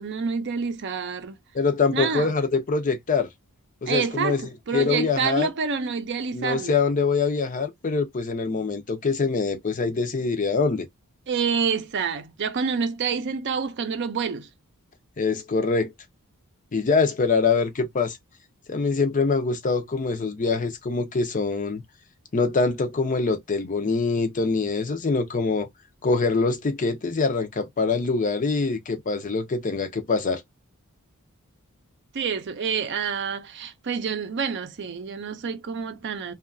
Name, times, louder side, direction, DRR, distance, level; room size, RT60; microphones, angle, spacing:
voice 1, 0.0-1.4 1.9-2.3 3.9-4.4 4.7-6.7 11.3-14.5 32.1-36.3, right 6 dB, 50° right, 0.5 m, -27 dB
voice 2, 1.5-3.3 3.8-4.4 4.7-5.5 6.3-10.9 15.2-15.9 16.7-18.2 18.7-21.8 22.3-25.7 26.0-30.4, left 4 dB, 35° left, 0.5 m, -24 dB
2.7 x 2.3 x 2.5 m
head